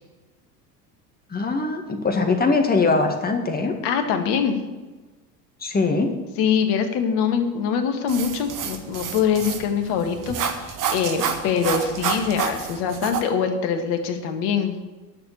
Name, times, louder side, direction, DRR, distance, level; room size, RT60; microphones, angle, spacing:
voice 1, 1.3-3.8 5.6-6.1, left 3 dB, 20° left, 4 dB, 2.0 m, -21 dB
voice 2, 3.8-4.6 6.4-14.7, left 7 dB, 50° left, 6 dB, 1.8 m, -23 dB
sound 1, 8.1-13.2, right 7 dB, 40° right, 1.7 m, -29 dB
11.0 x 6.6 x 8.6 m, 1.2 s
hypercardioid pair, 75°, 49 cm